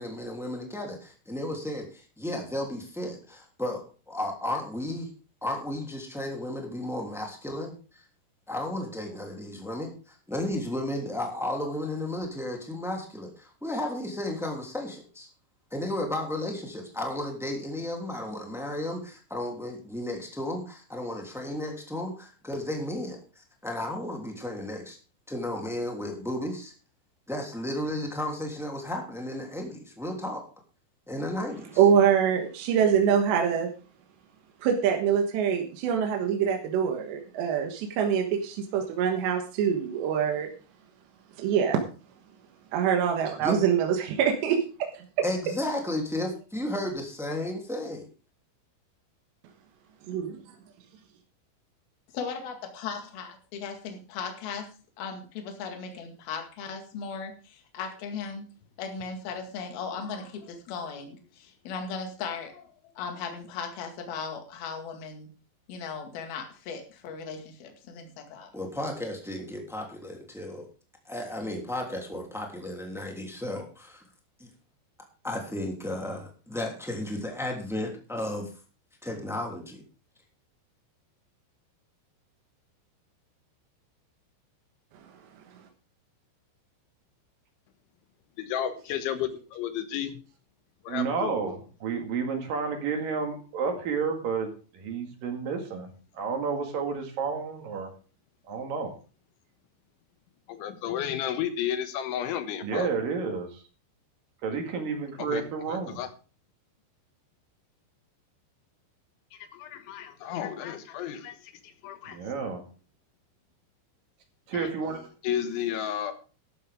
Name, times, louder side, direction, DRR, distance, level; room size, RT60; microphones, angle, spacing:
voice 1, 0.0-5.1 5.4-7.7 8.5-15.3 15.7-23.2 23.6-25.0 25.3-26.7 27.3-30.4 31.1-31.7 43.4-43.6 45.2-48.1 68.5-70.7 71.0-74.0 74.4-74.5 75.2-78.5 79.0-79.8, left 1 dB, ahead, 1 dB, 1.8 m, -33 dB
voice 2, 31.8-33.7 34.6-40.5 41.4-41.8 42.7-45.0 50.1-50.4, right 8 dB, 70° right, 2 dB, 3.4 m, -24 dB
voice 3, 52.1-58.5 58.8-65.3 65.7-68.5, left 5 dB, 60° left, 4 dB, 3.6 m, -37 dB
voice 4, 88.4-90.2 90.8-91.4 100.5-102.9 105.2-106.1 109.3-112.2 114.5-114.7 115.2-116.1, left 10 dB, 80° left, 9 dB, 3.7 m, -33 dB
voice 5, 90.9-94.5 94.7-95.9 96.1-97.9 98.5-98.9 102.6-103.6 104.4-106.0 112.1-112.6 114.5-115.1, right 5 dB, 55° right, 4 dB, 3.3 m, -31 dB
13.0 x 12.0 x 3.6 m, 0.36 s
omnidirectional pair, 5.5 m